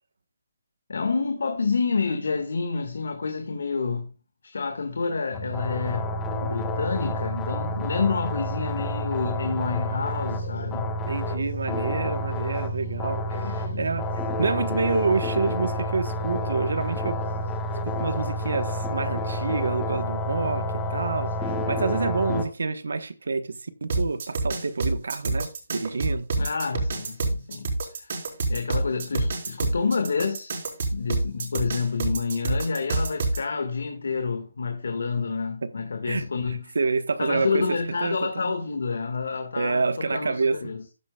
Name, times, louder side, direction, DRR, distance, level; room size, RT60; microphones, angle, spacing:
voice 1, 0.9-4.1 4.4-6.1 6.4-11.0 13.4-13.9 26.4-28.1 28.5-30.6 30.9-36.8 37.2-40.8, left 4 dB, 75° left, 1.8 m, -28 dB
sound 1, 4.6-21.7, left 5 dB, 55° left, 3.3 m, -44 dB
sound 2, 5.3-22.4, equal, 10° left, 1.4 m, -29 dB
voice 2, 11.1-14.1 14.4-17.2 17.8-26.3 35.6-35.7 36.1-38.5 39.6-40.6, right 4 dB, 80° right, 1.2 m, -28 dB
sound 3, 23.9-33.4, right 2 dB, 55° right, 4.4 m, -27 dB
14.0 x 9.7 x 2.4 m
hypercardioid pair, 155°, 0 cm